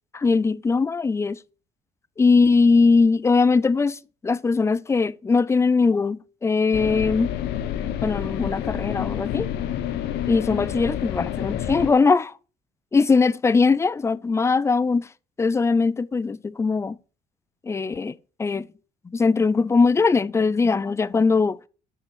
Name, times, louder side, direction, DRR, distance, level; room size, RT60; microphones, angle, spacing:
voice 1, 0.1-1.4 2.2-7.3 8.0-9.5 10.3-12.3 12.9-15.1 15.4-17.0 17.6-18.7 19.0-21.7, left 4 dB, 15° left, 0.4 m, -20 dB
sound 1, 6.7-11.9, left 10 dB, 80° left, 1.0 m, -28 dB
6.9 x 5.6 x 6.1 m
cardioid pair, 110°, 17 cm